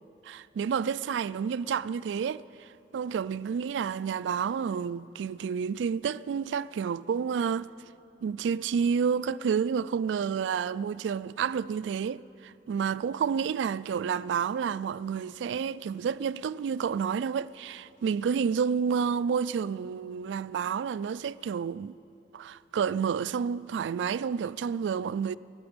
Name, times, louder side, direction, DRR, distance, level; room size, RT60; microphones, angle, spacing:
voice 1, 0.2-2.7 2.9-7.7 8.2-22.0 22.3-25.4, right 6 dB, 85° right, 0.3 m, -30 dB
18.5 x 6.8 x 8.8 m
head